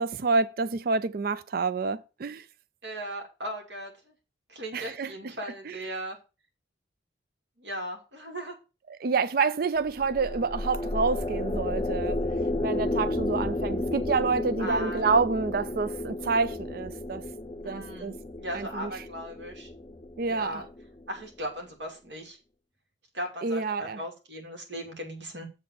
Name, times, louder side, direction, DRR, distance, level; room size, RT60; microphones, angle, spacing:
voice 1, 0.0-2.4 4.7-5.1 5.7-5.8 9.0-12.2 12.6-17.2 17.6-18.2 18.5-18.9 20.2-20.6 23.4-24.0, right 4 dB, 50° right, 0.4 m, -28 dB
voice 2, 2.8-4.1 4.5-6.2 7.6-8.5 14.6-15.1 17.6-18.1 18.4-19.7 20.3-20.7 21.1-22.4 23.1-25.5, equal, 65° right, 2.7 m, -37 dB
sound 1, 9.8-21.2, left 2 dB, 25° left, 0.6 m, -32 dB
7.6 x 4.1 x 6.8 m
head